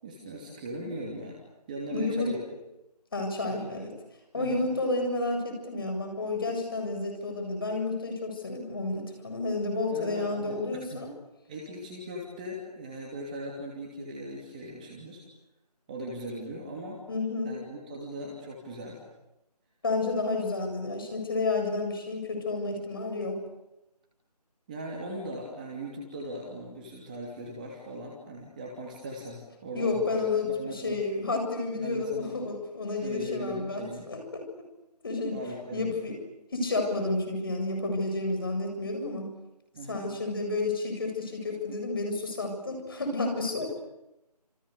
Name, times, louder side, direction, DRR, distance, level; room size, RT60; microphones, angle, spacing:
voice 1, 0.0-1.4 1.7-2.4 3.6-3.7 4.3-4.7 9.9-11.1 11.5-15.2 15.9-17.0 17.4-19.0 24.7-31.0 31.8-32.4 33.0-34.1 35.3-36.0 39.7-40.1, right 1 dB, 10° right, -2 dB, 2.8 m, -39 dB
voice 2, 1.9-2.3 3.1-3.9 4.3-11.1 17.1-17.6 19.8-23.4 29.7-34.4 35.0-35.4 35.7-36.2 36.5-39.3 39.9-43.7, left 3 dB, 35° left, 4 dB, 7.8 m, -30 dB
29.0 x 29.0 x 6.9 m, 0.93 s
figure-of-eight pair, 165°, 21 cm